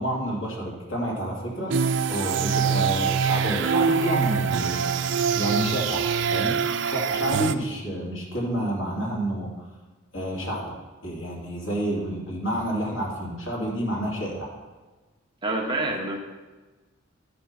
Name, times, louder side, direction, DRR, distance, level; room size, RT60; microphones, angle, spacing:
voice 1, 0.0-1.7 2.1-4.9 5.3-9.5 10.1-10.7 11.0-14.5, right 1 dB, 65° left, -3 dB, 2.8 m, -29 dB
sound 1, 1.7-7.5, right 6 dB, 60° right, 0.4 m, -24 dB
voice 2, 15.4-16.2, right 2 dB, 20° right, 0 dB, 1.1 m, -27 dB
12.5 x 5.3 x 5.5 m, 1.2 s
head